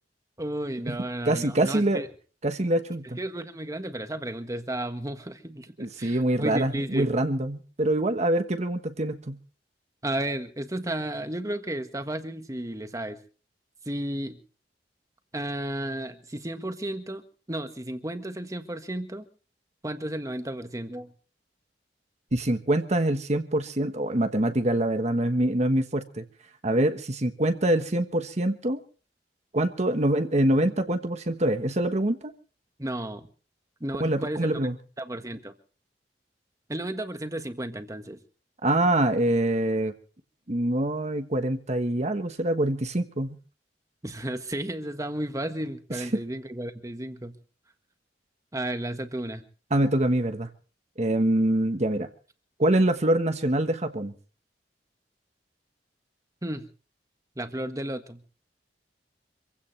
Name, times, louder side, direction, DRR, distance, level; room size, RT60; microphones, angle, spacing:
voice 1, 0.4-2.1 3.0-5.7 6.0-7.1 10.0-13.2 13.8-14.4 15.3-19.3 19.8-21.1 32.8-33.3 33.8-34.5 35.0-35.5 36.7-38.2 44.0-47.4 48.5-49.4 56.4-56.7 57.3-58.2, right 1 dB, 20° right, 8 dB, 1.6 m, -33 dB
voice 2, 1.3-2.0 2.4-3.2 5.8-9.4 22.3-26.2 26.6-28.8 29.5-32.3 34.0-34.8 38.6-39.9 40.5-43.4 49.7-50.5 51.0-52.1 52.6-54.1, right 1 dB, 40° right, 7 dB, 1.3 m, -25 dB
26.0 x 16.0 x 3.3 m, 0.38 s
head